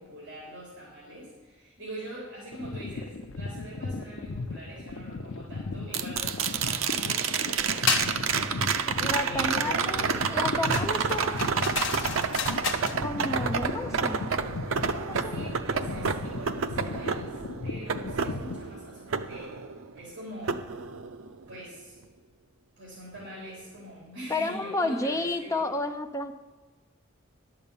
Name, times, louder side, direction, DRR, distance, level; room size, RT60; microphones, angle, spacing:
voice 1, 0.0-10.4 15.2-19.6 19.9-20.7 21.5-22.0 22.8-25.6, right 1 dB, 60° right, -6 dB, 3.5 m, -43 dB
sound 1, 2.5-18.6, left 3 dB, 85° left, 0.6 m, -36 dB
sound 2, 5.9-20.0 20.5-21.5 23.7-23.8, right 6 dB, 80° right, 0.5 m, -29 dB
sound 3, 7.9-8.2 10.7-13.0, left 6 dB, 65° left, 1.1 m, -31 dB
voice 2, 9.0-11.6 13.0-14.2 14.9-15.4 24.3-26.5, left 2 dB, 15° left, 5 dB, 0.6 m, -31 dB
11.0 x 6.8 x 7.1 m, 1.3 s
head